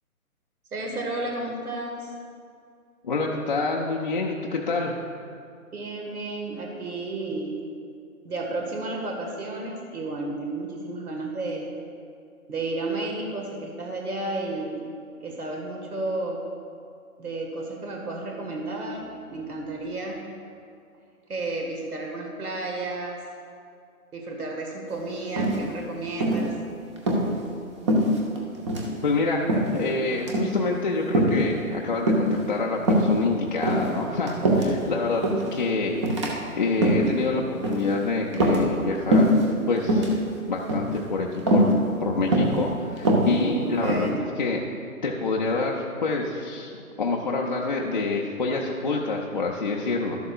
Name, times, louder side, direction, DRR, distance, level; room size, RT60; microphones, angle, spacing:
voice 1, 0.7-2.1 5.7-7.6 8.2-11.7 12.5-14.8 15.2-16.4 17.2-20.2 21.3-23.2 24.1-26.5 43.4-44.3, right 2 dB, 80° right, 0 dB, 1.8 m, -32 dB
voice 2, 3.0-4.9 29.0-36.0 36.5-39.4 39.7-40.2 40.5-41.7 42.0-44.1 44.4-44.6 45.0-46.7 47.0-50.2, left 3 dB, 35° left, -2 dB, 0.5 m, -27 dB
sound 1, 25.4-25.8 26.2-26.5 27.0-27.3 27.9-28.4 28.7-28.9 29.5-29.8 30.2-30.5 31.1-31.4 32.1-32.4 32.8-33.1 33.6-34.8 35.2-35.5 36.0-36.3 36.7-37.1 37.6-37.9 38.3-38.8 39.1-39.4 39.8-40.1 40.7-41.0 41.5-41.7 42.3-42.6 43.0-44.1, right 1 dB, 20° right, 0.7 m, -22 dB
12.0 x 11.5 x 2.4 m, 2.4 s
figure-of-eight pair, 150°, 44 cm